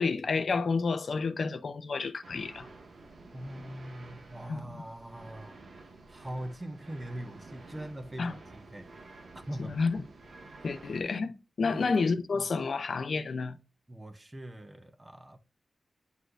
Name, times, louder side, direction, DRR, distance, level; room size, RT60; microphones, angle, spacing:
voice 1, 0.0-2.7 4.5-4.6 8.2-8.3 9.8-10.0 10.6-11.3 11.6-13.6, left 4 dB, 70° left, 0.6 m, -29 dB
sound 1, 2.2-11.0, right 3 dB, 80° right, 1.4 m, -51 dB
voice 2, 3.3-5.6 6.1-8.9 9.3-9.8 11.6-11.8 12.3-12.4 13.9-15.4, right 1 dB, 20° right, 0.7 m, -42 dB
9.3 x 4.1 x 2.5 m
wide cardioid pair, 120°, 0 cm